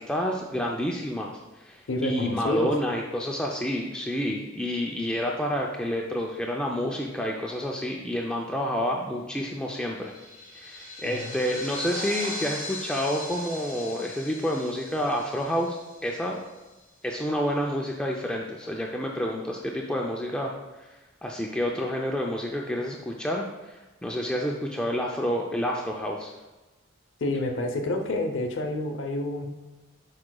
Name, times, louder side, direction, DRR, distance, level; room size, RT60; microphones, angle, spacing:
voice 1, 0.0-10.1 10.5-16.4 17.0-20.5 20.8-26.3, equal, 5° left, -1 dB, 0.4 m, -29 dB
voice 2, 1.9-2.7 11.0-11.4 27.2-29.5, left 2 dB, 70° left, 4 dB, 0.7 m, -29 dB
sound 1, 9.7-16.6, left 1 dB, 20° right, 1.8 m, -39 dB
11.0 x 4.8 x 2.2 m, 1.1 s
head